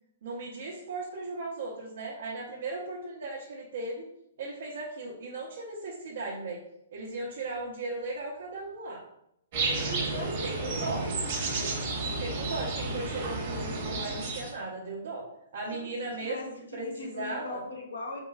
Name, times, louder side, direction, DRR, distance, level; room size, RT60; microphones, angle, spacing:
voice 1, 0.2-4.1 4.4-6.6 6.9-9.0 10.2-11.0 12.0-15.2 15.5-16.4 16.7-17.6, right 2 dB, 65° right, -5 dB, 0.9 m, -37 dB
sound 1, 9.5-14.5, right 3 dB, 45° right, 1.3 m, -32 dB
voice 2, 9.8-10.8 15.7-15.9 16.2-18.2, left 2 dB, 80° left, 1 dB, 0.9 m, -40 dB
3.8 x 2.9 x 2.4 m, 0.79 s
hypercardioid pair, 145°, 0 cm